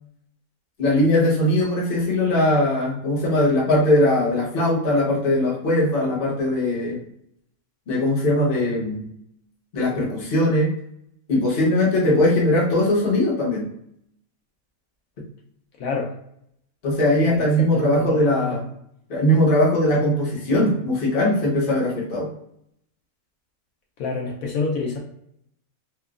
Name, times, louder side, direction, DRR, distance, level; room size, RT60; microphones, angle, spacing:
voice 1, 0.8-7.0 7.9-9.1 9.7-10.7 11.3-13.7 16.8-18.6 19.1-22.3, left 1 dB, 45° left, -4 dB, 0.9 m, -20 dB
voice 2, 15.8-16.1 17.3-18.6 24.0-25.0, left 4 dB, 75° left, -2 dB, 1.0 m, -28 dB
3.0 x 2.2 x 2.3 m, 0.73 s
omnidirectional pair, 1.5 m